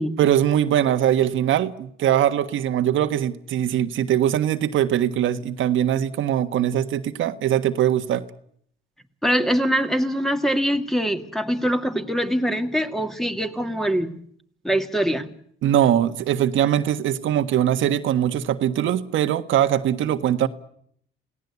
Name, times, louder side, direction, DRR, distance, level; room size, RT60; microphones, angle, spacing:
voice 1, 0.2-8.2 15.6-20.5, right 10 dB, 80° right, 8 dB, 1.5 m, -21 dB
voice 2, 9.2-14.2 14.6-15.3, equal, ahead, 7 dB, 2.2 m, -23 dB
28.0 x 18.0 x 8.3 m, 0.67 s
cardioid pair, 90°, 20 cm